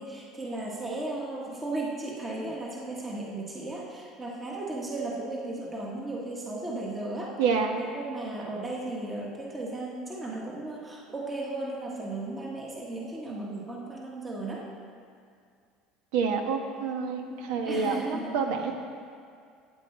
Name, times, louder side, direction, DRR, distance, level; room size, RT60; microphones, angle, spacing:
voice 1, 0.0-7.4 7.7-14.7 17.3-18.4, right 2 dB, 15° right, -2 dB, 1.3 m, -35 dB
voice 2, 7.4-7.8 16.1-18.0 18.3-18.7, right 5 dB, 80° right, 4 dB, 1.2 m, -27 dB
13.0 x 8.6 x 4.3 m, 2.3 s
cardioid pair, 140°, 0 cm